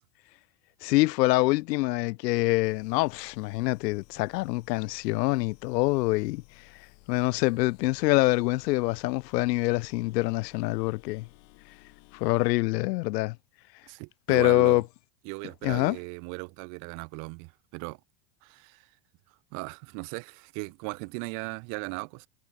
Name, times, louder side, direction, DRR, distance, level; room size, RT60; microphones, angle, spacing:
voice 1, 0.8-6.4 7.1-11.3 12.1-13.4 14.3-14.8 15.6-16.0, left 21 dB, 85° left, 0.7 m, -25 dB
sound 1, 2.6-12.5, left 33 dB, 40° left, 1.8 m, -57 dB
voice 2, 13.9-14.8 15.2-18.0 18.4-18.8 19.5-22.3, right 36 dB, 40° right, 1.4 m, -37 dB
supercardioid pair, 170°, 48 cm